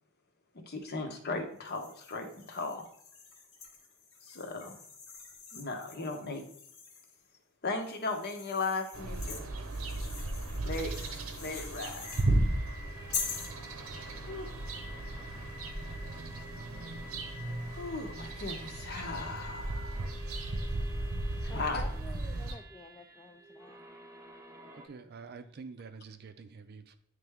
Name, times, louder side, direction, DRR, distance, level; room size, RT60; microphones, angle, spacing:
voice 1, 0.7-2.8 4.2-4.7 5.5-6.5 7.6-9.4 10.6-10.9 11.4-12.2 14.3-14.5 17.7-20.0 21.4-21.9, left 3 dB, 50° left, 4 dB, 0.9 m, -37 dB
sound 1, 1.6-7.2 7.8-12.3 13.1-13.6, left 6 dB, 85° left, 1.2 m, -44 dB
sound 2, 8.9-22.5, right 2 dB, 85° right, 0.8 m, -35 dB
sound 3, 12.0-24.9, equal, 15° right, 0.7 m, -50 dB
voice 2, 21.5-23.8, left 2 dB, 15° left, 4 dB, 0.3 m, -50 dB
voice 3, 24.7-27.0, right 5 dB, 50° right, 9 dB, 0.5 m, -47 dB
9.2 x 3.3 x 3.5 m, 0.65 s
head